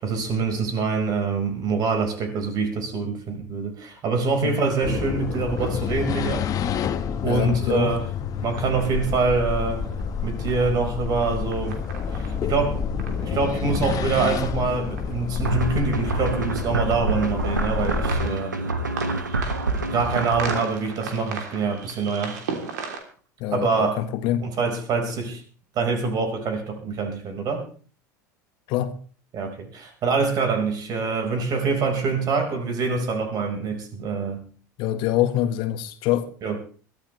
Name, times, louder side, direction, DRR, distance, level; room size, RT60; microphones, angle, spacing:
voice 1, 0.0-6.4 7.2-8.1 8.4-9.9 10.2-11.8 12.1-12.8 13.2-18.6 19.7-22.4 23.5-24.0 24.4-25.4 25.7-27.6 29.3-34.5 36.4-36.6, right 4 dB, 45° right, 4.9 m, -25 dB
sound 1, 4.6-23.0, right 5 dB, 70° right, 3.2 m, -40 dB
sound 2, 4.8-18.1, left 7 dB, 40° left, 1.4 m, -29 dB
voice 2, 7.2-7.9 23.4-24.5 28.7-29.0 34.8-36.3, left 12 dB, 55° left, 1.5 m, -25 dB
sound 3, 15.4-20.6, right 2 dB, 90° right, 1.6 m, -27 dB
22.5 x 14.5 x 3.3 m
hypercardioid pair, 75°, 10 cm